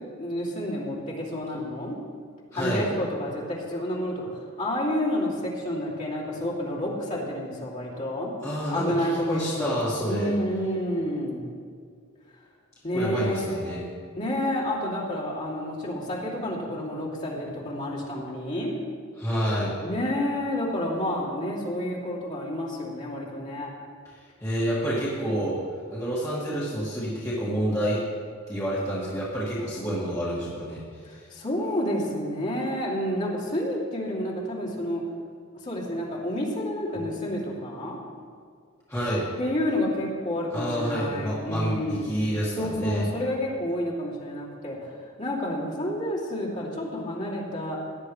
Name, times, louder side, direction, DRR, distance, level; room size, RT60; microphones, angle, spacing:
voice 1, 0.2-2.0 2.5-4.2 4.6-8.3 8.7-9.7 10.1-11.5 12.8-13.5 14.1-18.7 19.8-23.7 31.1-35.0 35.6-38.0 39.4-42.2 42.6-44.9 45.2-47.8, left 1 dB, 35° left, -6 dB, 2.9 m, -29 dB
voice 2, 2.5-2.8 8.4-10.3 12.9-13.8 19.2-19.8 24.4-25.6 25.9-28.0 28.5-31.3 36.9-37.0 38.9-39.3 40.5-43.1, equal, 15° left, -9 dB, 2.2 m, -28 dB
17.5 x 10.5 x 3.3 m, 2.1 s
head